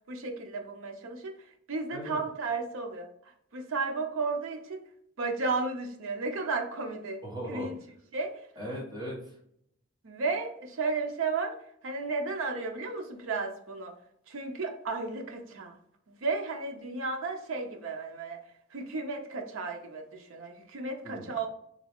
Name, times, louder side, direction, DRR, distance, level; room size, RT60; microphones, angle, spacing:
voice 1, 0.1-4.8 5.2-7.8 8.1-8.5 10.0-14.0 14.3-15.8 16.1-18.4 18.7-21.5, right 3 dB, 70° right, 4 dB, 0.6 m, -34 dB
voice 2, 1.9-2.2 7.2-7.7 8.6-9.4 21.0-21.5, equal, 20° right, -4 dB, 1.2 m, -38 dB
3.6 x 2.3 x 3.5 m, 0.70 s
head